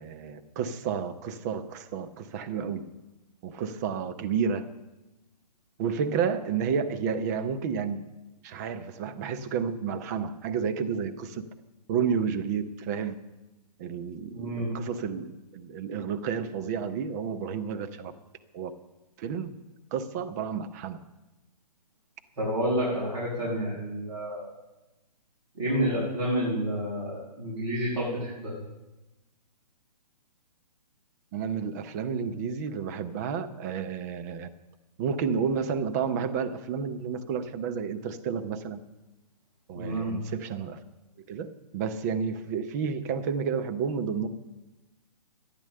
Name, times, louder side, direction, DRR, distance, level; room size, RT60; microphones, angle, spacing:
voice 1, 0.0-2.8 3.4-4.6 5.8-8.0 8.4-11.4 11.9-13.2 13.8-18.1 18.5-18.7 19.2-19.6 19.9-21.0 31.3-34.5 35.0-38.8 39.7-40.8 41.3-41.5 41.7-44.3, right 6 dB, 25° right, 10 dB, 0.7 m, -31 dB
voice 2, 14.3-14.7 22.4-24.5 25.5-28.5 39.7-40.1, equal, 50° right, -6 dB, 5.6 m, -29 dB
13.5 x 10.0 x 6.6 m, 1.0 s
figure-of-eight pair, 130°, 21 cm